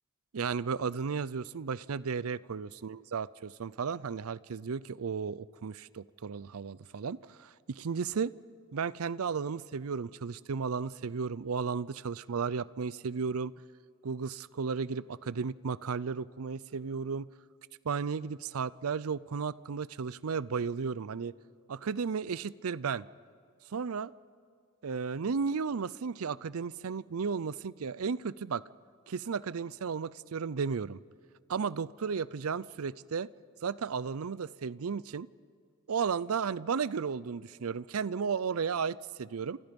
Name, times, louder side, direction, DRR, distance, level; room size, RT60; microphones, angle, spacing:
voice 1, 0.3-8.3 8.7-13.5 14.0-17.3 17.8-21.3 21.7-23.1 23.7-24.1 24.8-28.6 29.1-31.0 31.5-33.3 33.6-35.3 35.9-39.6, right 5 dB, 90° right, 20 dB, 0.5 m, -34 dB
29.5 x 27.5 x 5.3 m, 2.2 s
head